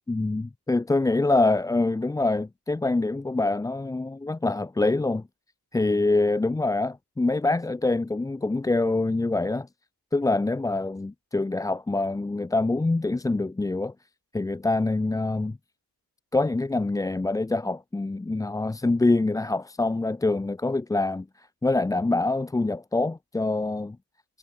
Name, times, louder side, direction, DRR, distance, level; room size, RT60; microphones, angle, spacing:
voice 1, 0.1-5.2 5.7-9.7 10.1-13.9 14.3-15.6 16.3-24.0, left 2 dB, 10° left, 0.4 m, -25 dB
wide cardioid pair, 150°, 40 cm